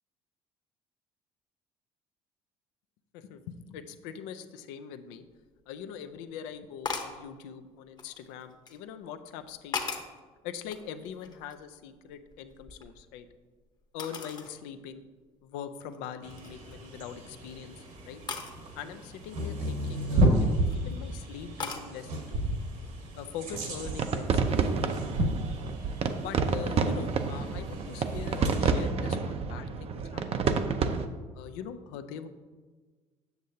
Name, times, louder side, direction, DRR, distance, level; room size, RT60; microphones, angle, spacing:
voice 1, 3.1-5.3 5.7-10.0 10.4-13.3 13.9-15.0 15.4-18.2 18.7-22.5 23.2-25.0 26.2-30.7 31.3-32.3, left 8 dB, 85° left, 9 dB, 0.5 m, -42 dB
sound 1, 5.4-5.5 6.8-7.2 8.0-8.8 9.4-10.2 10.7-11.7 12.1-13.3 14.0-14.5 15.0-15.1 15.7-16.0 16.3-16.7 18.3-18.6 20.3-20.8 21.6-21.9, left 4 dB, 30° left, 0.9 m, -38 dB
sound 2, 16.2-28.9, right 1 dB, 65° right, 1.5 m, -33 dB
sound 3, 23.5-31.1, right 5 dB, 45° right, 0.6 m, -29 dB
8.0 x 6.4 x 2.8 m, 1.4 s
supercardioid pair, 70°, 14 cm